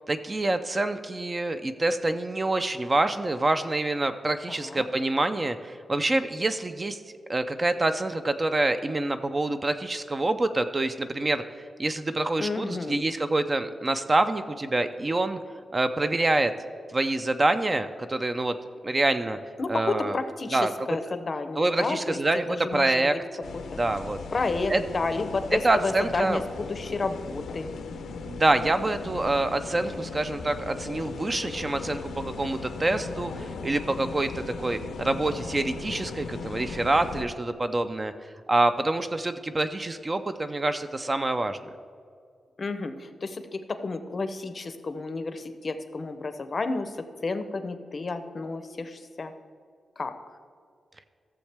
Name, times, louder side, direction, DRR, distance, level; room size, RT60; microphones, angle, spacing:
voice 1, 0.1-7.0 7.3-11.4 11.8-15.4 15.7-16.5 16.9-18.5 18.8-19.4 19.7-20.2 20.5-20.7 21.6-23.1 23.7-24.2 24.7-24.8 25.6-26.4 28.3-38.1 38.5-41.6, right 2 dB, 25° right, 9 dB, 0.4 m, -26 dB
voice 2, 4.5-4.9 12.4-13.0 19.6-22.2 22.5-23.2 23.5-23.8 24.3-27.7 42.6-49.3 50.0-50.4, left 3 dB, 35° left, 9 dB, 0.6 m, -31 dB
sound 1, 23.4-37.2, left 4 dB, 90° left, 0.6 m, -38 dB
14.5 x 7.2 x 3.4 m, 2.2 s
wide cardioid pair, 160°, 0 cm